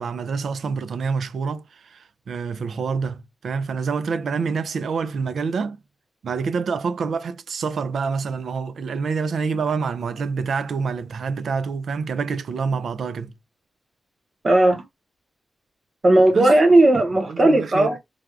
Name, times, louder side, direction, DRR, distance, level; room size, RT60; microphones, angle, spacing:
voice 1, 0.0-5.8 6.2-13.3 16.3-16.5 17.3-18.0, right 5 dB, 75° right, 0.4 m, -27 dB
voice 2, 14.4-14.8 16.0-18.0, right 1 dB, 35° right, 1.0 m, -16 dB
3.4 x 2.4 x 3.4 m
wide cardioid pair, 155°, 0 cm